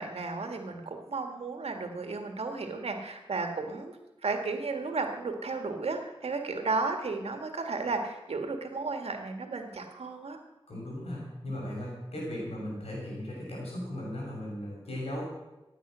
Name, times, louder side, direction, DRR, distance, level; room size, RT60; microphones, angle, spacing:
voice 1, 0.0-4.0 4.2-10.4, right 3 dB, 85° right, 4 dB, 1.9 m, -34 dB
voice 2, 10.7-15.2, left 1 dB, 90° left, -3 dB, 6.5 m, -37 dB
16.0 x 9.2 x 6.3 m, 1.0 s
cardioid pair, 45°, 10 cm